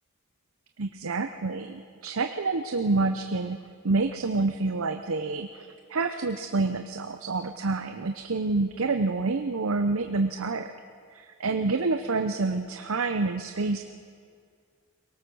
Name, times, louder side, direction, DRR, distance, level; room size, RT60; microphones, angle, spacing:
voice 1, 0.8-3.6 3.8-10.7 11.1-13.9, right 3 dB, 70° right, 7 dB, 0.7 m, -28 dB
23.0 x 18.0 x 6.2 m, 2.2 s
head